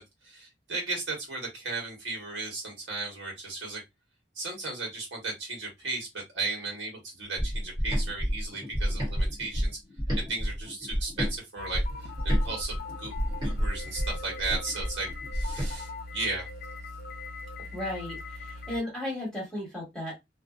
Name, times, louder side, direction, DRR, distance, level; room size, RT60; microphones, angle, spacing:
voice 1, 0.0-3.8 4.3-9.8 10.1-16.5, right 3 dB, 80° right, 1.4 m, -35 dB
sound 1, 7.4-11.3 11.7-15.7, equal, 25° right, 1.1 m, -29 dB
sound 2, 11.6-18.8, left 3 dB, 55° left, 0.4 m, -40 dB
voice 2, 17.7-20.2, left 1 dB, 5° left, 1.2 m, -35 dB
2.6 x 2.2 x 2.3 m
head